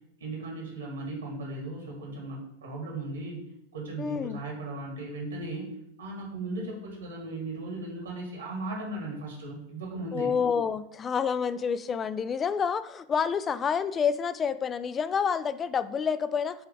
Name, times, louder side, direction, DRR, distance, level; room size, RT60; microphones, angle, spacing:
voice 1, 0.2-3.4 3.7-5.7 6.0-10.3, right 2 dB, 70° right, 0 dB, 1.7 m, -37 dB
voice 2, 4.0-4.4 10.1-16.6, left 6 dB, 20° left, 14 dB, 0.3 m, -28 dB
7.8 x 3.3 x 3.8 m, 0.78 s
figure-of-eight pair, 90°, 0 cm